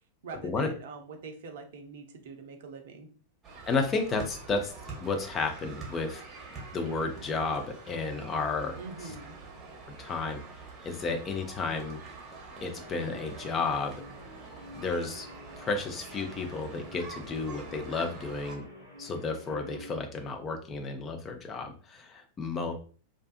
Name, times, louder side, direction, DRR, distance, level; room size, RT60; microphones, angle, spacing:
voice 1, 0.2-3.1 8.8-9.3, right 4 dB, 60° right, 4 dB, 0.5 m, -44 dB
sound 1, 3.4-18.6, right 4 dB, 20° right, 0.9 m, -46 dB
voice 2, 3.7-4.7 5.0-8.8 9.0-9.1 10.0-10.4 10.8-12.0 12.6-14.0 14.7-15.3 15.6-18.7 19.0-22.7, left 4 dB, 25° left, 4 dB, 0.5 m, -32 dB
Guitar, 12.7-20.1, equal, 85° left, 1.0 m, -49 dB
2.5 x 2.3 x 2.4 m, 0.40 s
figure-of-eight pair, 90°, 0 cm